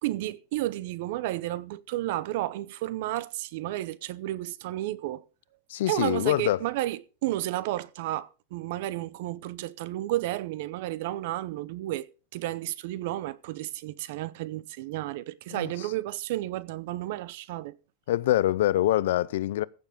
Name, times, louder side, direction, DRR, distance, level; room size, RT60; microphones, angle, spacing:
voice 1, 0.0-5.2 5.8-12.1 12.3-17.7, right 16 dB, 50° right, 0.6 m, -32 dB
voice 2, 5.7-6.6 15.5-15.7 18.1-19.6, left 14 dB, 65° left, 0.5 m, -24 dB
15.0 x 7.0 x 5.2 m
supercardioid pair, 175°, 0 cm